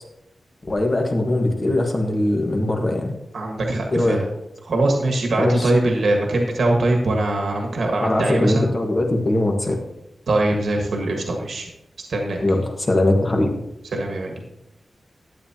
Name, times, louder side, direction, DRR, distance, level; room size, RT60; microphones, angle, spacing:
voice 1, 0.6-3.1 3.9-4.2 5.4-5.7 8.0-9.8 12.4-13.5, left 1 dB, 30° left, 2 dB, 1.6 m, -21 dB
voice 2, 3.3-4.2 4.6-8.7 10.3-11.7 12.1-12.4 13.9-14.3, right 2 dB, 75° right, 1 dB, 1.6 m, -22 dB
12.0 x 8.9 x 2.9 m, 0.89 s
wide cardioid pair, 135°, 0 cm